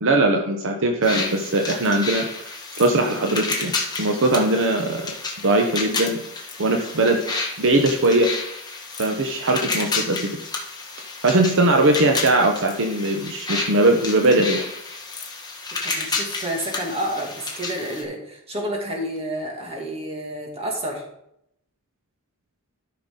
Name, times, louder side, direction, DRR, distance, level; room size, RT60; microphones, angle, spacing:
voice 1, 0.0-2.3 2.8-3.7 4.0-5.1 5.4-6.2 6.6-7.2 7.6-8.3 9.0-10.3 11.2-14.6, right 2 dB, 60° right, 3 dB, 0.9 m, -20 dB
sound 1, 1.0-18.0, left 3 dB, 20° left, 1.5 m, -31 dB
voice 2, 15.8-21.0, right 1 dB, 25° right, 0 dB, 2.2 m, -29 dB
13.0 x 5.7 x 3.8 m, 0.77 s
head